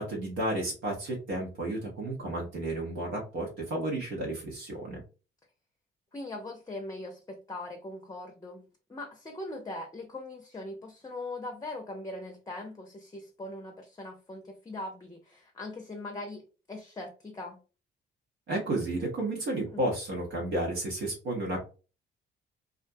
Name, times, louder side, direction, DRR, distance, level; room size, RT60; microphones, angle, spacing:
voice 1, 0.0-5.0 18.5-21.6, right 1 dB, 80° right, -1 dB, 0.9 m, -32 dB
voice 2, 6.1-17.6 19.7-19.8, left 2 dB, 20° left, 3 dB, 0.5 m, -41 dB
2.5 x 2.1 x 2.6 m, 0.33 s
cardioid pair, 90°, 20 cm